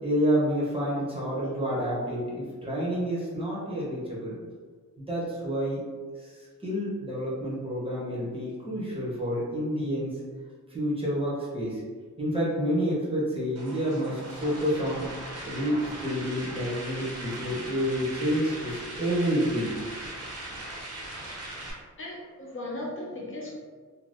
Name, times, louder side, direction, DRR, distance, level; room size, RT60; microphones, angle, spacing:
voice 1, 0.0-4.4 5.0-5.8 6.2-10.2 10.7-11.8 12.2-15.1 15.4-19.8, equal, 20° right, -7 dB, 0.7 m, -29 dB
sound 1, 13.6-21.7, right 1 dB, 50° right, 0.7 m, -39 dB
voice 2, 21.0-21.5 22.0-23.6, left 1 dB, 40° left, -5 dB, 0.7 m, -38 dB
2.6 x 2.3 x 3.4 m, 1.5 s
wide cardioid pair, 170°, 31 cm